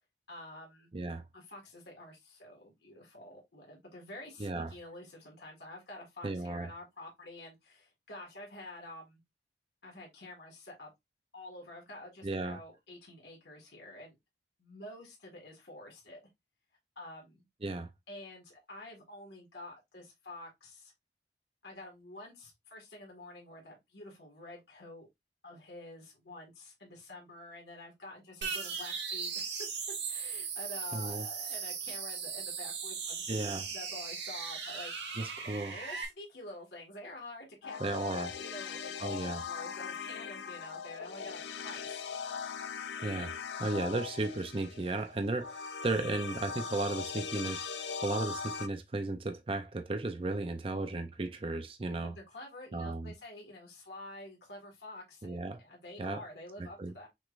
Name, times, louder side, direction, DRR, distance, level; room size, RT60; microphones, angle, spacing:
voice 1, 0.3-0.9 1.3-9.2 9.8-10.9 11.3-14.2 14.6-16.2 17.0-17.5 18.1-20.9 21.6-25.1 25.4-29.7 30.1-33.3 33.6-42.0 52.0-57.1, left 1 dB, 75° left, 1.8 m, -48 dB
voice 2, 0.9-1.2 4.4-4.7 6.2-6.7 12.2-12.6 17.6-17.9 30.9-31.3 33.3-33.7 35.2-35.8 37.8-38.3 39.0-39.4 43.0-43.3 43.6-52.2 52.7-53.1 55.2-55.6 56.0-56.2 56.8-56.9, right 2 dB, 30° right, 0.5 m, -35 dB
sound 1, 28.4-36.1, right 6 dB, 90° right, 1.4 m, -38 dB
sound 2, 37.6-48.7, left 6 dB, 90° left, 0.5 m, -40 dB
6.2 x 3.2 x 2.5 m
head